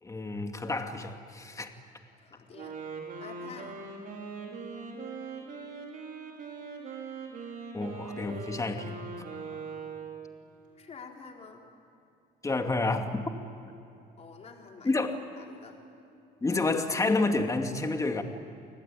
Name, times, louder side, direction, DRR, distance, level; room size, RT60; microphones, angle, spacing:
voice 1, 0.0-1.7 7.7-9.0 12.4-13.2 14.8-15.1 16.4-18.2, left 3 dB, 20° left, 5 dB, 2.3 m, -29 dB
voice 2, 2.2-2.7 3.2-3.8 10.8-11.6 14.2-15.0 15.4-15.8, left 5 dB, 40° left, 1 dB, 4.1 m, -48 dB
Wind instrument woodwind instrument, 2.5-10.4, right 4 dB, 55° right, 5.3 m, -41 dB
29.5 x 20.0 x 8.8 m, 2.7 s
cardioid pair, 110°, 17 cm